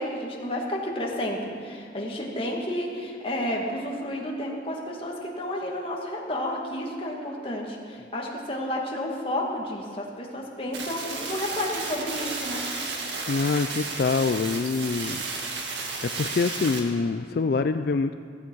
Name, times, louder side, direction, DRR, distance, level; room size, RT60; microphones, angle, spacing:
voice 1, 0.0-12.7, left 1 dB, 30° left, -1 dB, 2.0 m, -31 dB
sound 1, 10.7-16.8, right 3 dB, 70° right, 1.9 m, -33 dB
voice 2, 13.3-15.2 16.2-18.1, left 4 dB, 55° left, 9 dB, 0.4 m, -25 dB
15.5 x 15.5 x 4.7 m, 2.2 s
head